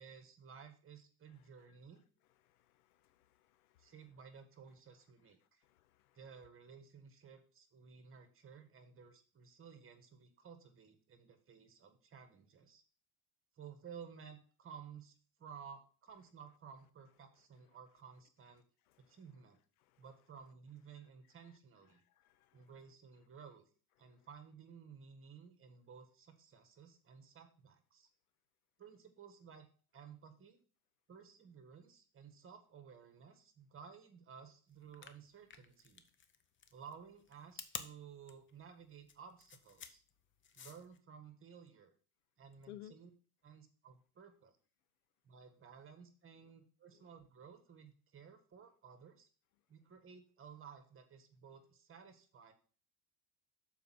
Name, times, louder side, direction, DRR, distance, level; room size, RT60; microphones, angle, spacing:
voice 1, 0.0-2.0 3.8-5.6 6.1-12.8 13.6-15.1 15.4-18.6 19.1-19.6 20.0-22.0 22.5-23.7 24.0-28.1 28.8-29.7 29.9-30.6 31.1-36.0 36.7-40.0 40.6-41.9 42.4-43.1 43.4-44.5 45.2-49.3 49.7-52.5, right 6 dB, 30° right, 1.6 m, -56 dB
voice 2, 2.4-3.9 5.6-6.2 19.1-19.2 22.2-22.7 42.7-42.9 46.9-47.0, left 13 dB, 80° left, 0.7 m, -58 dB
sound 1, 34.8-41.0, left 7 dB, 25° left, 0.8 m, -51 dB
6.9 x 4.6 x 6.0 m
hypercardioid pair, 90°, 44 cm